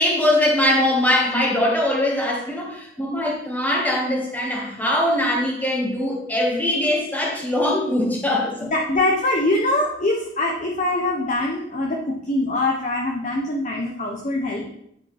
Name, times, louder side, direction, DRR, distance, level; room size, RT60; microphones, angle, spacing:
voice 1, 0.0-8.7, left 1 dB, 10° left, -3 dB, 1.8 m, -21 dB
voice 2, 8.6-14.6, left 2 dB, 40° left, -1 dB, 0.9 m, -23 dB
10.0 x 4.8 x 3.5 m, 0.73 s
head